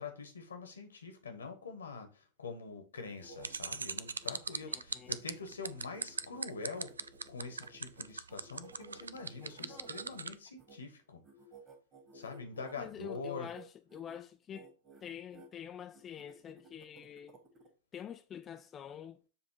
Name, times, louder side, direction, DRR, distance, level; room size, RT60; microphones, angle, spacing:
voice 1, 0.0-6.9 7.3-11.2 12.1-13.5, left 4 dB, 70° left, 1.3 m, -45 dB
sound 1, 2.9-10.8 11.2-12.9 13.3-13.6 13.9-14.2 14.5-15.5 15.9-17.7, right 3 dB, 25° right, 1.9 m, -57 dB
sound 2, 3.4-10.3, right 5 dB, 75° right, 0.3 m, -38 dB
voice 2, 4.7-5.2 9.6-9.9 12.8-14.7 15.0-17.4 17.9-19.2, left 9 dB, 25° left, 0.4 m, -47 dB
7.1 x 3.1 x 4.6 m
figure-of-eight pair, 90°, 0 cm